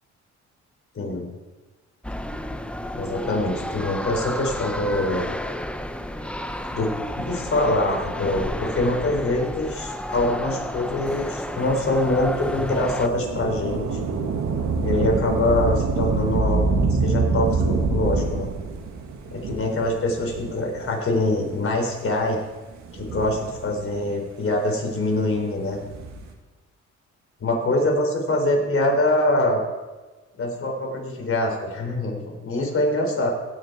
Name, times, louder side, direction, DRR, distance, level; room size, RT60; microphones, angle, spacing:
voice 1, 1.0-1.3 2.9-5.3 6.7-14.0 14.7-16.7 17.0-18.5 19.3-22.4 22.9-25.8 27.4-29.6 30.4-33.3, left 1 dB, 45° left, 1 dB, 3.9 m, -24 dB
sound 1, 2.0-13.1, left 1 dB, 5° left, 0.7 m, -32 dB
Thunder / Rain, 12.0-21.0 21.7-21.8 22.7-24.0 25.5-26.3, right 4 dB, 65° right, 1.9 m, -26 dB
17.0 x 6.7 x 4.8 m, 1.2 s
cardioid pair, 90°, 30 cm